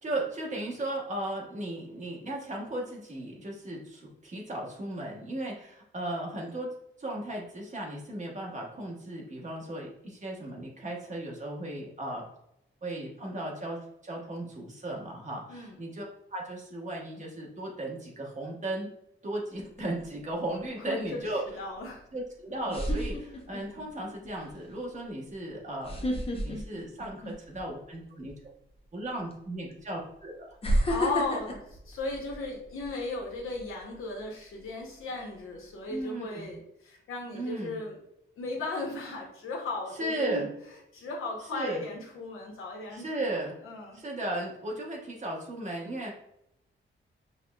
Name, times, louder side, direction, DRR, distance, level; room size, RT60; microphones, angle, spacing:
voice 1, 0.0-6.7 7.0-12.2 12.8-13.8 14.0-16.0 16.3-18.9 19.2-21.4 22.1-26.1 26.4-28.3 28.9-30.5 35.9-36.5 37.3-37.8 40.0-40.5 41.5-41.8 42.9-43.6 43.9-46.2, right 1 dB, 35° right, -2 dB, 1.0 m, -36 dB
sound 1, 19.6-20.0 21.9-22.0 22.7-23.8 24.3-24.5 25.8-27.7 28.0-28.3 29.3-29.4 30.6-32.9 33.3-33.6, equal, 30° left, 0.7 m, -30 dB
voice 2, 20.8-21.2 21.6-22.0 30.9-38.0 38.4-40.5 40.9-43.4 43.6-44.0, left 3 dB, 90° left, -1 dB, 0.8 m, -36 dB
5.3 x 2.1 x 2.2 m, 0.78 s
wide cardioid pair, 115°, 21 cm